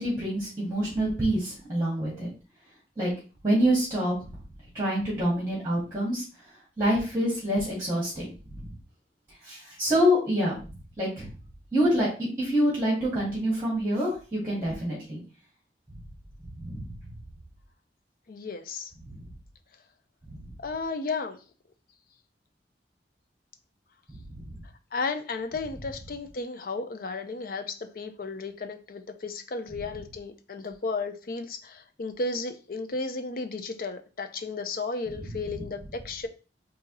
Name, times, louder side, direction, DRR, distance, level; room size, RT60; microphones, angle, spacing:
voice 1, 0.0-2.3 3.0-3.1 3.4-4.1 4.7-6.2 6.8-8.7 9.4-10.6 11.0-11.3 11.7-15.2 16.6-16.9 20.3-20.5 24.4-24.5 35.2-35.3, equal, 15° right, 1.9 m, -26 dB
voice 2, 18.3-18.9 20.6-21.4 24.9-36.3, left 3 dB, 55° left, 0.5 m, -34 dB
4.1 x 2.8 x 3.9 m
head